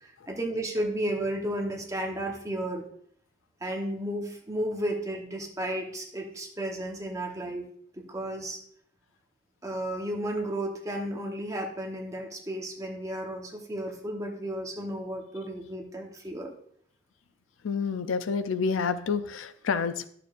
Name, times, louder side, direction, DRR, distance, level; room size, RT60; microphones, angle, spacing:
voice 1, 0.0-2.8 3.6-7.6 7.9-8.6 9.6-16.5, right 1 dB, 15° right, 0 dB, 1.0 m, -33 dB
voice 2, 17.6-20.1, left 5 dB, 85° left, 11 dB, 0.5 m, -28 dB
11.0 x 6.7 x 2.5 m, 0.65 s
head